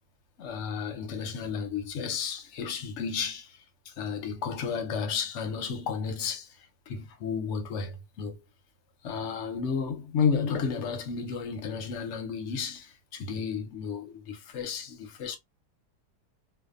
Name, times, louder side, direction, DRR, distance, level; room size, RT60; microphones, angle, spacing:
voice 1, 0.4-8.4 9.0-15.4, left 6 dB, 60° left, 0.8 m, -32 dB
2.7 x 2.2 x 2.3 m
omnidirectional pair, 1.7 m